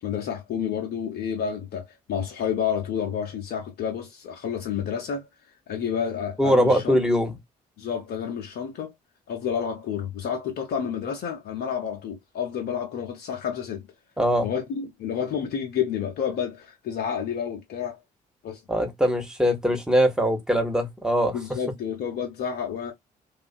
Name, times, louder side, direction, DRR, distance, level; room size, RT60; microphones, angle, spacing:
voice 1, 0.0-5.3 5.7-7.0 7.8-8.9 9.3-13.9 14.4-18.0 18.4-18.6 21.3-22.9, left 8 dB, 55° left, 0.8 m, -30 dB
voice 2, 6.4-7.3 14.2-14.5 18.7-21.4, equal, 5° right, 1.1 m, -22 dB
2.6 x 2.4 x 2.4 m
figure-of-eight pair, 45°, 20 cm